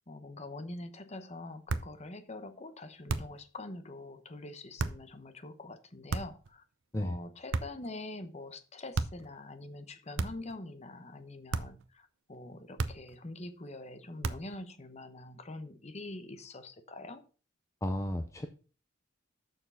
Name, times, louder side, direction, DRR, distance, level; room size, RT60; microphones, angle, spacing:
voice 1, 0.0-6.6 7.0-17.2, left 2 dB, 35° left, 10 dB, 0.9 m, -45 dB
sound 1, 1.7-2.0 3.1-3.5 4.8-5.1 6.1-6.5 7.5-7.9 8.9-9.3 10.2-10.6 11.5-11.9 12.8-13.2 14.2-14.6, right 3 dB, 75° right, 0.7 m, -34 dB
voice 2, 17.8-18.5, left 1 dB, 15° left, 6 dB, 0.5 m, -33 dB
7.1 x 6.4 x 5.5 m, 0.37 s
head